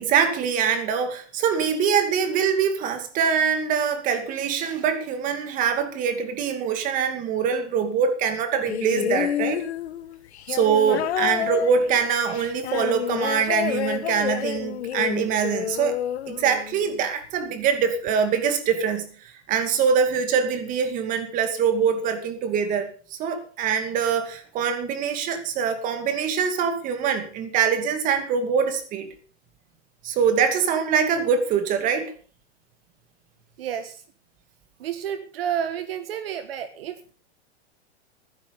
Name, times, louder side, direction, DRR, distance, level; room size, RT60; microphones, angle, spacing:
voice 1, 0.0-9.6 10.5-16.0 16.3-19.1 19.5-29.1 30.0-32.1, right 7 dB, 25° right, 2.4 m, -24 dB
sound 1, 8.7-17.1 18.1-18.2, left 11 dB, 65° left, 1.7 m, -29 dB
voice 2, 33.6-34.0 34.8-37.0, right 9 dB, 55° right, 1.6 m, -30 dB
16.0 x 12.5 x 5.4 m
hypercardioid pair, 160°, 34 cm